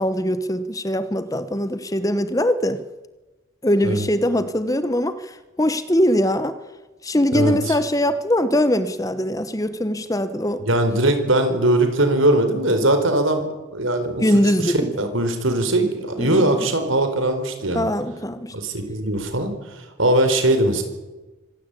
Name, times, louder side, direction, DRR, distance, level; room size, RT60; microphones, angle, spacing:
voice 1, 0.0-2.8 3.6-5.2 5.6-6.5 7.0-10.6 14.2-14.8 16.2-16.5 17.7-18.5, equal, 15° left, 1.0 m, -21 dB
voice 2, 7.3-7.7 10.6-14.2 14.6-17.9 18.5-20.8, right 1 dB, 90° right, 4.4 m, -20 dB
25.0 x 16.5 x 8.4 m
head